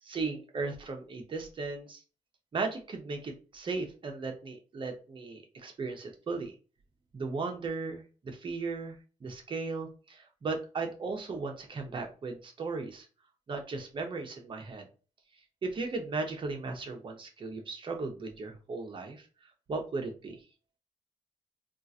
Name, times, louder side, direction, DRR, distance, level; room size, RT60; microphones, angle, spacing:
voice 1, 0.0-2.0 2.5-6.5 7.1-13.1 13.5-14.9 15.6-19.3 19.7-20.4, right 3 dB, 40° right, 3 dB, 0.8 m, -36 dB
3.6 x 2.5 x 2.7 m, 0.36 s
cardioid pair, 115°, 13 cm